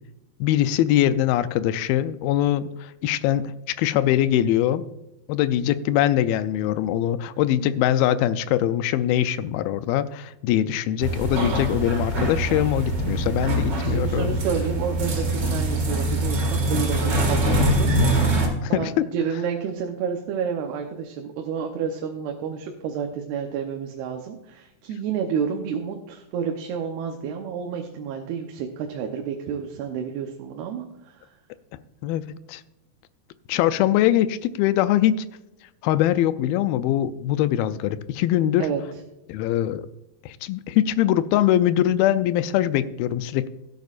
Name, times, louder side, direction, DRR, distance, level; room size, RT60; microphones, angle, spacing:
voice 1, 0.4-4.8 5.3-14.4 17.4-17.7 18.6-19.1 32.0-32.2 32.5-32.6 33.5-35.3 35.8-38.7 39.3-39.9 40.2-43.5, left 12 dB, 80° left, 13 dB, 2.3 m, -22 dB
sound 1, 11.0-18.5, right 1 dB, 40° right, 1.8 m, -23 dB
voice 2, 13.8-17.9 18.7-31.3 38.6-38.8, right 7 dB, 85° right, 2 dB, 2.9 m, -30 dB
16.0 x 9.4 x 2.5 m, 0.92 s
omnidirectional pair, 4.5 m